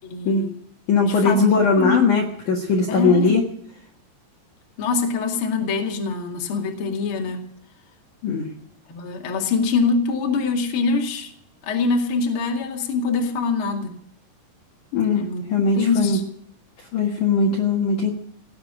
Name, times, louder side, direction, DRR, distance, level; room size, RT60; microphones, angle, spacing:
voice 1, 0.0-0.5 1.1-2.1 2.9-3.4 4.8-7.4 8.9-11.3 11.6-14.0 15.1-15.4 15.8-16.2, left 4 dB, 40° left, 1 dB, 2.2 m, -24 dB
voice 2, 0.9-3.4 8.2-8.4 14.9-15.2 15.5-16.2 16.9-18.1, left 4 dB, 55° left, 0 dB, 2.5 m, -19 dB
18.0 x 8.0 x 9.8 m, 0.72 s
omnidirectional pair, 5.2 m